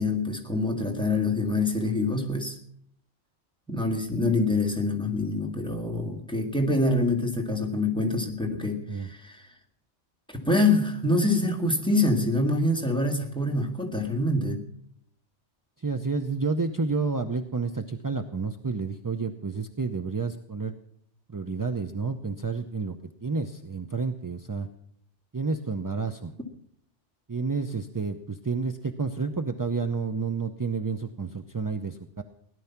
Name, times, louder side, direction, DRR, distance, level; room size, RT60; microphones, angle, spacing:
voice 1, 0.0-2.6 3.7-9.5 10.3-14.6, left 2 dB, 5° left, 1 dB, 1.9 m, -25 dB
voice 2, 15.8-20.7 21.3-23.0 23.2-24.7 25.3-26.3 27.3-32.2, right 4 dB, 25° right, 7 dB, 0.5 m, -30 dB
17.0 x 11.0 x 5.9 m, 0.67 s
omnidirectional pair, 1.3 m